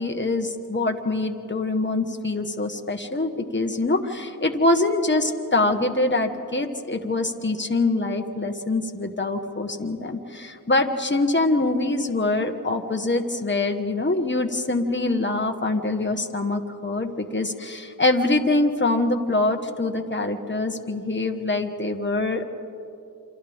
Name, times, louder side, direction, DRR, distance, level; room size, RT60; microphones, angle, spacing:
voice 1, 0.0-22.4, left 2 dB, 30° left, 5 dB, 1.5 m, -24 dB
28.0 x 26.0 x 3.6 m, 2.7 s
wide cardioid pair, 50°, 36 cm